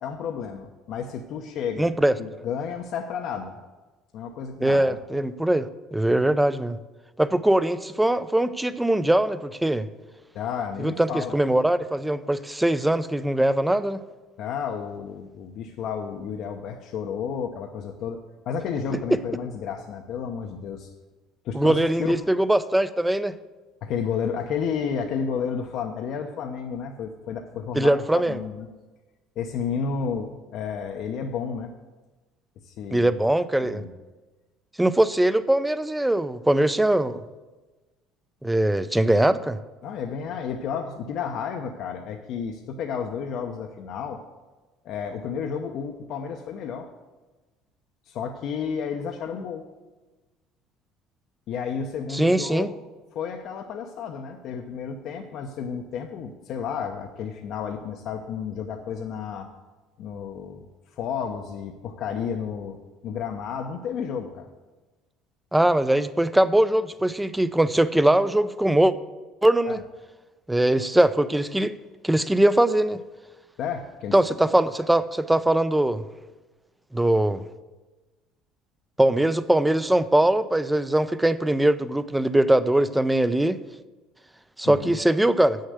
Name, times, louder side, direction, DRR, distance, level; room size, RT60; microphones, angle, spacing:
voice 1, 0.0-3.6 4.1-5.0 10.3-11.3 14.4-18.2 18.5-20.9 21.4-22.3 23.8-28.0 28.3-28.7 29.4-31.7 32.6-33.1 33.6-33.9 39.8-44.2 44.8-46.9 48.1-49.7 51.5-52.8 53.1-59.5 60.0-60.7 61.0-62.8 63.0-64.5 69.6-69.7 73.6-74.1 84.6-85.0, left 6 dB, 60° left, 3 dB, 0.8 m, -32 dB
voice 2, 1.8-2.1 4.6-6.8 7.2-9.9 10.8-14.0 21.5-23.3 27.7-28.4 32.9-33.8 34.8-37.2 38.4-39.6 52.1-52.7 65.5-68.9 69.4-69.8 70.5-71.7 72.0-73.0 74.1-76.0 76.9-77.4 79.0-83.6 84.6-85.6, right 1 dB, 10° right, 14 dB, 0.6 m, -21 dB
8.2 x 6.5 x 8.1 m, 1.2 s
supercardioid pair, 80°, 0 cm